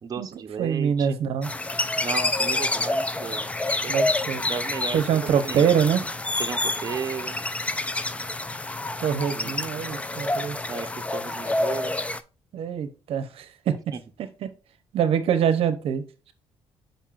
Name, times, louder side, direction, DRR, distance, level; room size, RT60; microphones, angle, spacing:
voice 1, 0.0-1.2 2.0-3.9 4.5-5.7 6.4-7.4 9.3-9.6 10.7-12.0 13.9-14.0, right 6 dB, 35° right, 0.8 m, -34 dB
voice 2, 0.6-1.5 3.9-4.4 4.9-6.0 9.0-10.6 12.5-13.9 14.4-14.5 14.9-16.1, right 8 dB, 70° right, 0.7 m, -24 dB
sound 1, 1.4-12.2, left 2 dB, 10° left, 0.4 m, -28 dB
7.2 x 5.4 x 2.4 m
cardioid pair, 105°, 10 cm